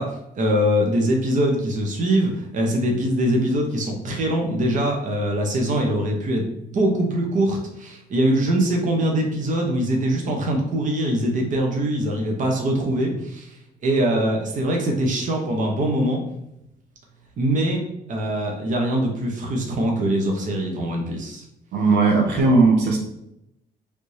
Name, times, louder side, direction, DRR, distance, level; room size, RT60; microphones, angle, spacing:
voice 1, 0.0-16.2 17.4-21.4, right 1 dB, 50° right, 1 dB, 0.8 m, -23 dB
voice 2, 21.7-23.0, right 3 dB, 80° right, 0 dB, 0.9 m, -17 dB
3.3 x 2.7 x 3.2 m, 0.80 s
cardioid pair, 105°, 17 cm